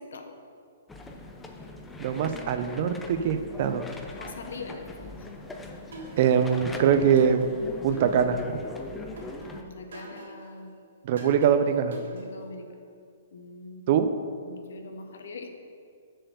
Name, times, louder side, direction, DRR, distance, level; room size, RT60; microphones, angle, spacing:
sound 1, 0.9-9.6, left 2 dB, 10° left, 0.6 m, -41 dB
voice 1, 2.0-3.9 6.2-7.5 7.8-8.6 11.0-12.0 13.9-14.1, right 7 dB, 45° right, 10 dB, 0.5 m, -23 dB
voice 2, 4.1-5.2 9.5-10.7 12.1-12.7 13.3-13.8 14.5-15.5, left 3 dB, 75° left, 5 dB, 1.0 m, -42 dB
sound 2, 5.9-6.7 7.2-8.6 9.2-10.6 11.2-12.6, right 3 dB, 70° right, 2.2 m, -45 dB
7.4 x 4.5 x 6.8 m, 2.3 s
hypercardioid pair, 145°, 0 cm